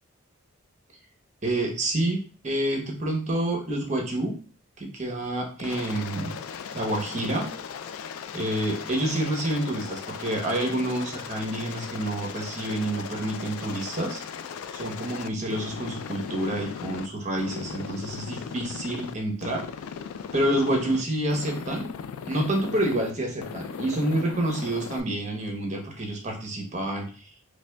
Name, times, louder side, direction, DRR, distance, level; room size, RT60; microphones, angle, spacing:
voice 1, 1.4-4.4 4.8-6.4 6.7-7.5 8.3-14.2 14.7-19.6 20.3-21.9 22.3-27.1, right 1 dB, 35° right, 1 dB, 0.8 m, -28 dB
Aircraft, 5.6-17.1 17.4-19.1 19.4-21.0 21.3-23.1 23.4-25.0, left 7 dB, 80° left, 0.3 m, -38 dB
5.0 x 2.3 x 2.2 m, 0.38 s
head